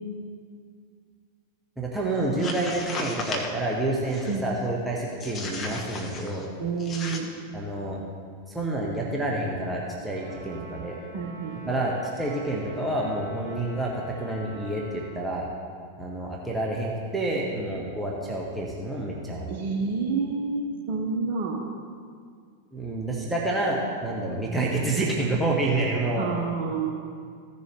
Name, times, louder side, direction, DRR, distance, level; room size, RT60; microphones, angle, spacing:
voice 1, 1.8-6.4 7.5-8.0 8.5-11.0 11.7-15.5 16.0-19.5 22.7-26.3, right 2 dB, 5° right, -4 dB, 1.3 m, -28 dB
sound 1, 2.2-3.6 4.1-4.5 5.2-6.5 6.8-7.2, left 3 dB, 25° left, 1.2 m, -35 dB
voice 2, 6.6-7.3 11.1-11.7 19.5-21.6 26.2-26.9, right 4 dB, 45° right, -1 dB, 1.0 m, -29 dB
Trumpet, 10.1-15.2, left 1 dB, 80° left, 2.1 m, -46 dB
15.5 x 6.8 x 3.2 m, 2.1 s
figure-of-eight pair, 90°, 0 cm